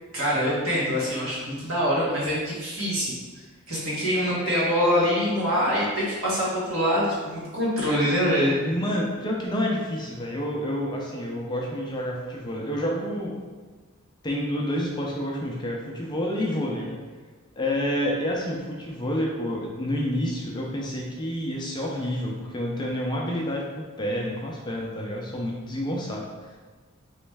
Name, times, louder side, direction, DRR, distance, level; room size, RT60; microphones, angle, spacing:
voice 1, 0.1-3.1 3.7-8.6, equal, 60° right, -7 dB, 1.4 m, -24 dB
voice 2, 8.6-13.4 14.2-17.0 17.6-26.6, equal, 20° left, -2 dB, 0.4 m, -29 dB
3.1 x 3.1 x 3.3 m, 1.3 s
head